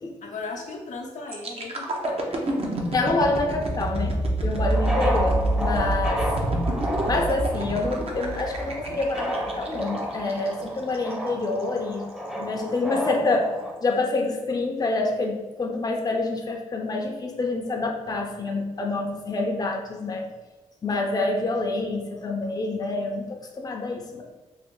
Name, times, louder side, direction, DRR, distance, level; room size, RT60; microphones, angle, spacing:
voice 1, 0.2-2.5, left 3 dB, 70° left, 0 dB, 0.6 m, -37 dB
sound 1, 1.3-11.1 11.6-11.8, right 1 dB, 50° right, 0.7 m, -27 dB
voice 2, 2.9-6.3 7.1-12.1 12.3-13.6 13.8-20.3 20.8-24.2, left 3 dB, 30° left, 1 dB, 0.6 m, -27 dB
sound 2, 4.7-13.7, equal, 5° right, 0.7 m, -32 dB
2.7 x 2.5 x 3.7 m, 1.2 s
cardioid pair, 60°, 13 cm